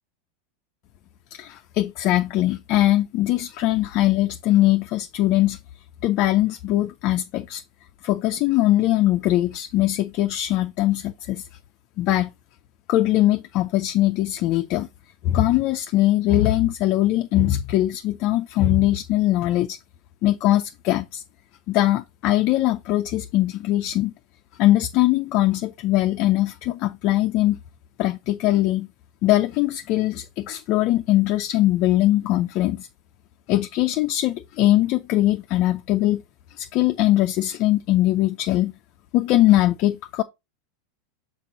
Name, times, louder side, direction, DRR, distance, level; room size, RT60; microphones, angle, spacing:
voice 1, 1.3-5.6 6.0-7.6 8.0-11.4 12.0-12.3 12.9-14.9 15.2-19.8 20.2-21.2 21.7-24.1 24.6-27.6 28.0-28.9 29.2-32.9 33.5-36.2 36.6-38.7 39.1-40.2, left 15 dB, 50° left, 0.5 m, -21 dB
5.9 x 4.8 x 4.0 m
hypercardioid pair, 115°, 0 cm